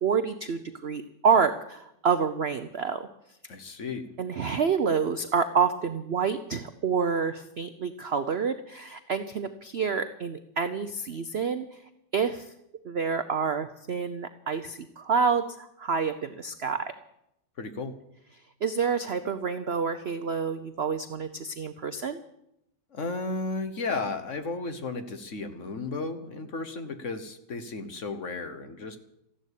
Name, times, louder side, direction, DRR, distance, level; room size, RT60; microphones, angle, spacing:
voice 1, 0.0-3.1 4.2-11.8 12.1-12.5 12.8-16.9 18.6-22.2, right 6 dB, 65° right, 10 dB, 0.6 m, -28 dB
voice 2, 3.5-4.1 17.6-17.9 22.9-29.0, left 3 dB, 45° left, 9 dB, 1.4 m, -34 dB
14.5 x 11.5 x 8.3 m, 0.82 s
omnidirectional pair, 2.0 m